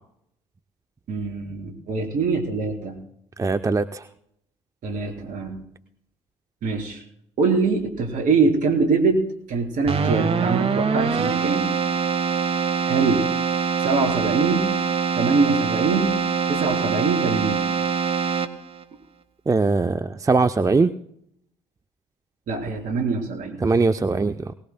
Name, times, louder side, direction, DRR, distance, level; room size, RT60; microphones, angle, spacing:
voice 1, 1.1-3.0 4.8-5.6 6.6-7.0 7.4-11.7 12.9-13.3 13.8-14.7 15.1-16.2 16.5-17.7 22.5-23.6, right 4 dB, 60° right, 3 dB, 3.8 m, -23 dB
voice 2, 3.4-4.0 19.5-20.9 23.6-24.5, right 3 dB, 20° right, 10 dB, 0.6 m, -21 dB
Keyboard (musical), 9.9-18.8, right 6 dB, 40° right, 1.1 m, -24 dB
21.0 x 19.0 x 2.2 m, 0.72 s
hypercardioid pair, 55°, 16 cm